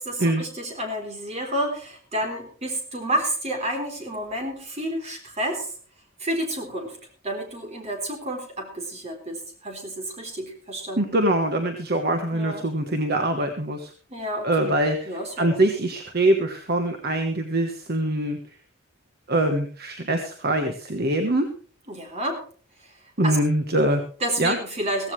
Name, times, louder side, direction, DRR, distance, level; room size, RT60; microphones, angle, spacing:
voice 1, 0.0-5.7 6.2-7.0 7.2-11.0 12.3-12.7 14.1-14.7 15.1-15.6 21.9-22.4 23.2-23.4 24.2-25.1, right 1 dB, 30° right, 3 dB, 3.7 m, -30 dB
voice 2, 11.0-13.9 14.4-18.4 19.3-21.5 23.2-24.0 24.4-24.6, right 1 dB, 50° right, 6 dB, 1.3 m, -23 dB
16.0 x 15.0 x 3.3 m, 0.42 s
head